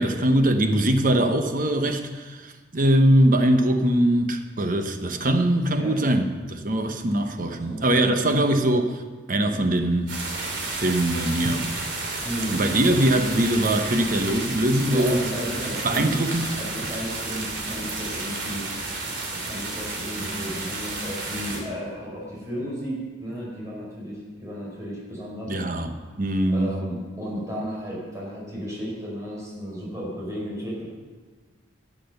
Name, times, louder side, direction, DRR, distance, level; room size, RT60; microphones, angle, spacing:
voice 1, 0.0-9.0 9.3-10.2 10.7-11.7 12.5-15.2 15.8-16.5 25.5-26.7, right 1 dB, 45° right, 0.9 m, -22 dB
voice 2, 7.5-7.8 8.2-8.4 12.2-12.6 14.8-16.2 16.6-18.6 19.3-25.8 26.5-30.8, equal, 15° right, 4.6 m, -33 dB
sound 1, 10.1-21.6, right 2 dB, 70° right, 2.7 m, -31 dB
13.0 x 7.6 x 6.6 m
head